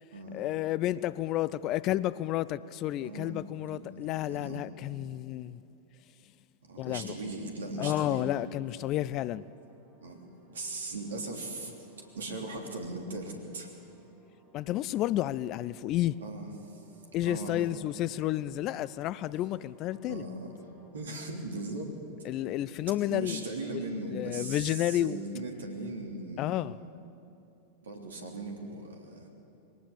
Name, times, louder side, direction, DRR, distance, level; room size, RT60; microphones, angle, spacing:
voice 1, 0.3-5.6 6.8-7.1 7.8-9.4 14.5-16.2 17.1-20.2 22.2-23.4 23.7-25.2 26.4-26.8, left 14 dB, 35° left, 0.4 m, -31 dB
voice 2, 3.0-3.4 3.7-3.8 4.2-4.6 6.6-8.3 10.0-10.2 10.5-11.9 12.1-13.7 16.2-16.9 17.2-17.6 20.0-20.5 20.9-21.9 23.1-26.7 27.8-29.3, right 2 dB, 65° right, 3.2 m, -38 dB
sound 1, 8.7-20.9, right 1 dB, ahead, 5.3 m, -61 dB
22.0 x 18.5 x 7.1 m
figure-of-eight pair, 90°, 0 cm